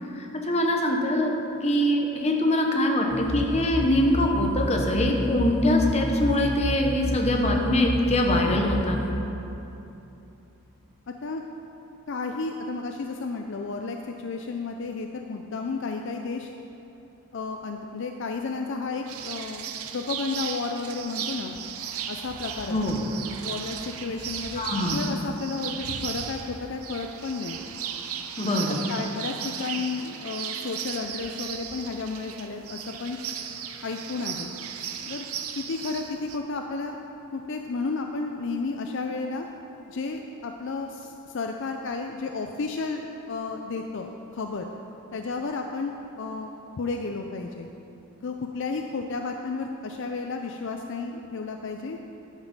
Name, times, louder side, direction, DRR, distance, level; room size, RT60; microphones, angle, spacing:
voice 1, 0.1-9.0 22.7-23.0 24.5-25.1 28.4-28.8, left 1 dB, 30° left, 1 dB, 1.0 m, -23 dB
sound 1, 3.1-9.1, equal, 5° left, 0.5 m, -30 dB
voice 2, 11.1-11.4 12.1-16.5 17.3-19.7 19.9-21.5 22.1-22.8 23.4-24.6 24.9-27.6 28.4-28.5 28.9-33.2 33.8-34.5 35.1-35.3 35.6-37.0 37.3-39.5 39.9-43.0 43.3-44.7 45.1-47.7 48.2-52.0, left 4 dB, 55° left, 4 dB, 0.5 m, -32 dB
sound 2, 19.1-36.4, right 8 dB, 75° right, 0.6 m, -36 dB
10.5 x 7.4 x 5.3 m, 2.9 s
head